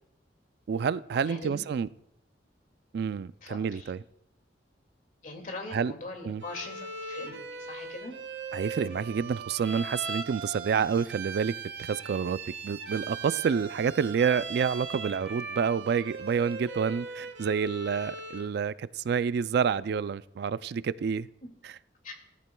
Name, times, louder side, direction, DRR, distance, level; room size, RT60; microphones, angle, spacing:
voice 1, 0.7-1.9 2.9-4.0 5.7-5.9 6.2-6.4 8.5-11.5 11.8-21.3 21.6-21.7, right 6 dB, 65° right, 0.3 m, -28 dB
voice 2, 1.2-1.6 3.4-3.9 5.2-8.2 22.0-22.2, left 2 dB, 50° left, 2.2 m, -41 dB
Bowed string instrument, 6.4-18.5, right 4 dB, 85° right, 1.1 m, -39 dB
18.0 x 13.5 x 2.3 m
head